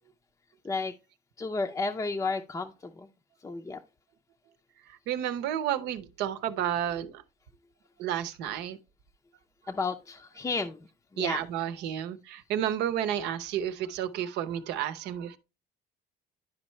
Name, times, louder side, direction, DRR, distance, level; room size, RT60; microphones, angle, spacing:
voice 1, 1.4-3.1 3.4-3.8 9.7-10.8 11.1-11.4, left 3 dB, 20° left, 0.5 m, -32 dB
voice 2, 5.1-7.2 8.0-8.8 11.2-15.4, right 10 dB, 90° right, 0.7 m, -31 dB
11.0 x 4.5 x 3.1 m
cardioid pair, 110°, 17 cm